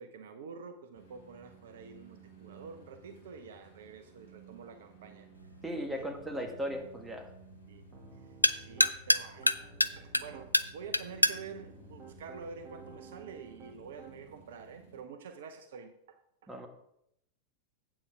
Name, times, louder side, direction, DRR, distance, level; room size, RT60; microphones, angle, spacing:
voice 1, 0.0-5.3 5.9-6.1 7.7-7.8 8.1-16.5, right 5 dB, 60° right, 8 dB, 0.7 m, -48 dB
sound 1, 0.9-15.0, right 5 dB, 65° left, 2.6 m, -57 dB
sound 2, 5.4-13.0, left 1 dB, 85° left, 0.4 m, -32 dB
voice 2, 5.6-7.3 16.5-16.7, equal, 10° right, 3 dB, 1.6 m, -37 dB
Piano, 7.9-9.0 9.4-10.5 11.2-14.4, right 6 dB, 35° right, 1.5 m, -53 dB
8.4 x 7.4 x 4.6 m, 0.76 s
figure-of-eight pair, 90°, 0 cm